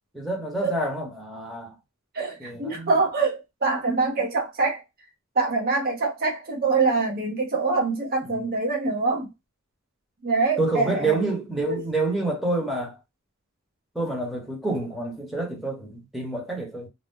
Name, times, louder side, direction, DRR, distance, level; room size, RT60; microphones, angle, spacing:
voice 1, 0.1-1.7 2.4-2.9 8.3-8.4 10.6-13.0 13.9-16.9, right 2 dB, ahead, 0.9 m, -28 dB
voice 2, 2.1-4.8 5.4-9.3 10.2-11.2 11.6-11.8, right 3 dB, 45° right, 0.8 m, -24 dB
2.6 x 2.1 x 3.5 m
head